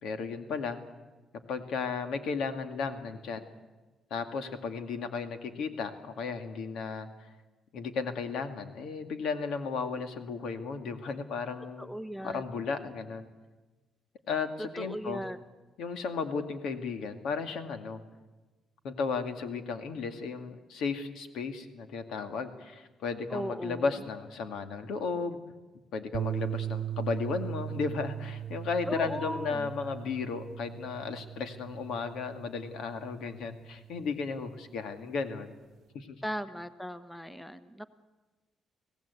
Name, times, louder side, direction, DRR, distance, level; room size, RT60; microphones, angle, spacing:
voice 1, 0.0-0.8 1.5-3.5 4.1-7.3 7.7-11.9 12.2-13.3 14.3-15.2 15.8-18.0 18.8-25.4 25.9-35.6 35.9-36.2, left 5 dB, 80° left, 8 dB, 2.1 m, -34 dB
voice 2, 11.8-12.4 14.8-15.4 23.3-23.9 28.9-29.7 36.2-37.9, equal, 5° left, 12 dB, 1.1 m, -37 dB
sound 1, 26.1-34.5, right 10 dB, 60° right, 0.9 m, -39 dB
25.5 x 17.0 x 8.3 m, 1.2 s
cardioid pair, 90°, 0 cm